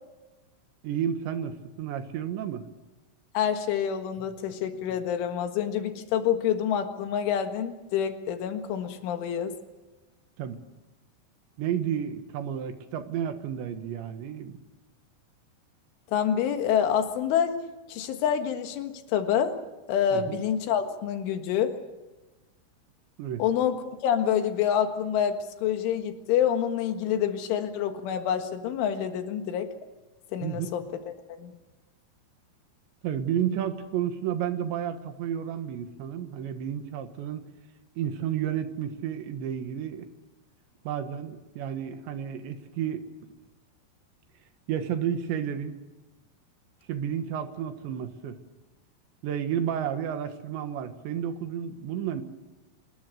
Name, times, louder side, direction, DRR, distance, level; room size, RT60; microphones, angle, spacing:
voice 1, 0.8-2.7 10.4-10.6 11.6-14.6 20.1-20.4 23.2-23.4 30.4-30.7 33.0-37.5 38.0-40.1 40.9-43.0 43.3-43.4 44.7-45.8 46.9-48.4 49.2-52.2, right 9 dB, 75° right, 8 dB, 3.6 m, -31 dB
voice 2, 3.3-9.6 16.1-17.6 17.9-19.6 19.9-21.8 23.4-29.7 30.3-30.9 31.3-31.5, left 9 dB, 85° left, 7 dB, 4.1 m, -27 dB
26.5 x 21.0 x 6.7 m, 1.1 s
omnidirectional pair, 5.5 m